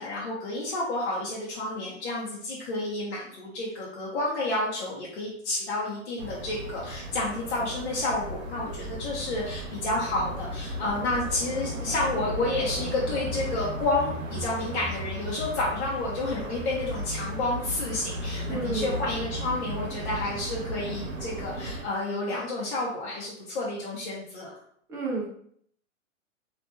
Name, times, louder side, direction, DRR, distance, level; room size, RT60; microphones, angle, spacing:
voice 1, 0.0-24.6, left 2 dB, 55° left, -5 dB, 0.9 m, -30 dB
sound 1, 6.2-21.9, equal, 75° right, 0.8 m, -35 dB
voice 2, 18.5-19.0 24.9-25.2, right 3 dB, 5° right, -5 dB, 0.5 m, -30 dB
3.0 x 2.5 x 2.2 m, 0.64 s
hypercardioid pair, 120°, 39 cm